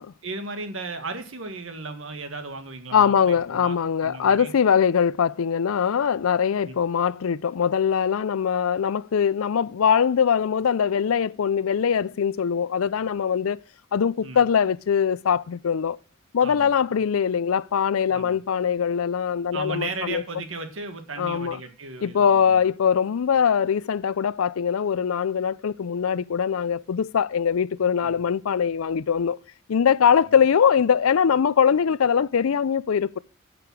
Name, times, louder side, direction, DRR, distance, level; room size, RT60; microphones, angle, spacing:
voice 1, 0.2-4.5 6.6-6.8 14.2-14.4 16.4-16.7 18.1-18.4 19.5-22.7 28.0-28.2, right 3 dB, 70° right, 1.7 m, -35 dB
voice 2, 2.9-13.6 13.9-16.0 16.3-20.2 21.2-21.6 22.0-29.4 29.7-33.2, left 7 dB, 90° left, 0.4 m, -22 dB
9.8 x 6.8 x 6.1 m
head